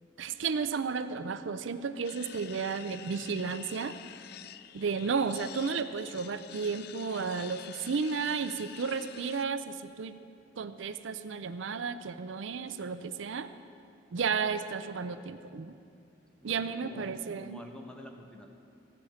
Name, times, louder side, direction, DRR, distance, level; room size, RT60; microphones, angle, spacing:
voice 1, 0.2-4.0 4.7-10.1 10.6-13.5 14.1-15.7 16.4-17.6, right 5 dB, 80° right, 11 dB, 0.5 m, -33 dB
sound 1, 2.0-9.4, left 11 dB, 55° left, 0.3 m, -48 dB
voice 2, 16.4-17.1 17.4-18.5, equal, 5° left, 2 dB, 1.0 m, -49 dB
15.0 x 5.7 x 8.8 m, 2.5 s
head